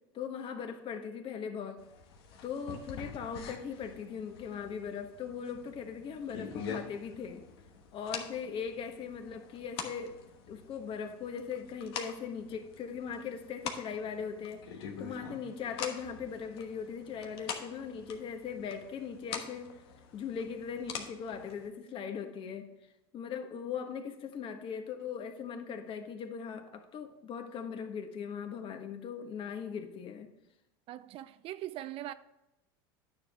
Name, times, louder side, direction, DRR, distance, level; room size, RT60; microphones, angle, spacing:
voice 1, 0.1-1.8 2.4-7.4 7.9-10.2 10.5-19.8 20.1-22.7 23.1-30.3, left 6 dB, 40° left, 1.3 m, -39 dB
sound 1, 1.8-21.7, left 6 dB, 75° left, 1.2 m, -45 dB
voice 2, 30.9-32.1, right 13 dB, 45° right, 0.4 m, -41 dB
9.6 x 6.9 x 3.6 m
hypercardioid pair, 100°, 13 cm